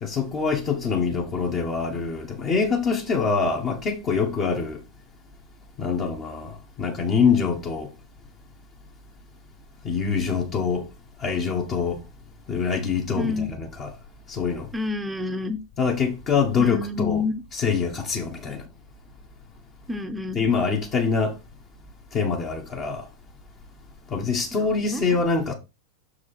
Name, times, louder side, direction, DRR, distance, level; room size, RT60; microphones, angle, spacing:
voice 1, 0.0-4.8 5.8-7.9 9.8-10.9 11.2-12.0 12.5-13.9 14.3-14.7 15.8-17.2 17.5-18.6 20.3-21.3 22.1-23.0 24.1-25.5, left 5 dB, 30° left, 1.6 m, -24 dB
voice 2, 13.1-13.5 14.7-15.6 16.6-17.4 19.9-20.4 24.5-25.0, left 3 dB, 10° right, 0.9 m, -28 dB
6.6 x 4.8 x 4.3 m
figure-of-eight pair, 90°, 0 cm